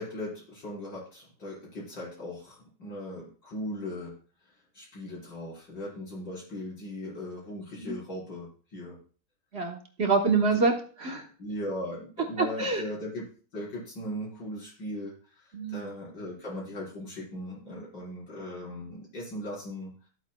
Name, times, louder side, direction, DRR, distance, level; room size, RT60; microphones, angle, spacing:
voice 1, 0.0-4.2 4.7-9.0 10.5-10.7 11.4-13.2 13.5-15.4 15.7-19.9, left 1 dB, 80° left, -6 dB, 5.4 m, -38 dB
voice 2, 9.5-11.3 12.4-12.8 15.5-15.8, right 4 dB, 40° right, 2 dB, 1.2 m, -26 dB
13.0 x 8.2 x 2.3 m, 0.40 s
omnidirectional pair, 2.0 m